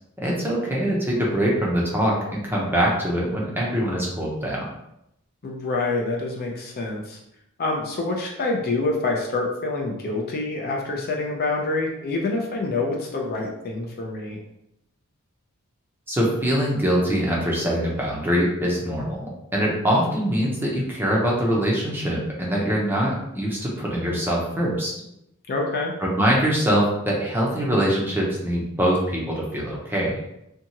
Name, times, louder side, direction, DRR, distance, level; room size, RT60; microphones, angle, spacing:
voice 1, 0.2-4.6 16.1-24.9 26.0-30.2, equal, 10° right, -4 dB, 0.6 m, -23 dB
voice 2, 5.4-7.2 7.6-14.4 25.5-25.9, left 3 dB, 45° left, 0 dB, 0.5 m, -26 dB
2.7 x 2.3 x 2.8 m, 0.82 s
head